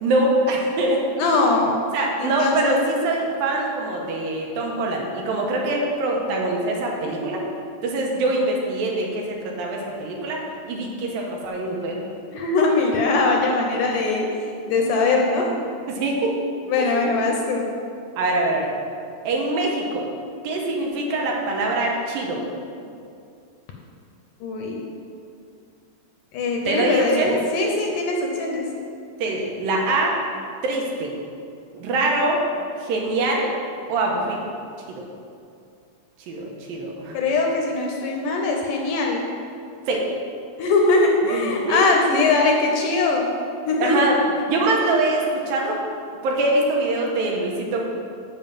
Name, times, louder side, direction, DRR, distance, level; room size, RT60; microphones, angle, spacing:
voice 1, 0.0-1.3 1.9-7.4 7.8-10.4 10.7-12.1 15.9-16.3 16.8-17.0 18.2-18.7 19.2-20.1 20.4-22.4 26.7-27.4 29.2-30.2 30.6-31.1 31.7-32.4 32.8-33.5 33.9-34.4 34.9-35.0 36.3-37.2 39.9-40.1 41.3-42.2 43.8-44.2 44.5-45.8 46.2-47.9, right 2 dB, 75° right, -1 dB, 2.8 m, -24 dB
voice 2, 1.2-1.8 2.2-2.8 12.3-15.5 16.7-17.7 24.4-24.8 26.3-28.6 37.1-39.3 40.6-43.3 43.7-44.1, left 3 dB, 75° left, 1 dB, 2.1 m, -21 dB
7.2 x 5.4 x 7.5 m, 2.5 s
omnidirectional pair, 4.2 m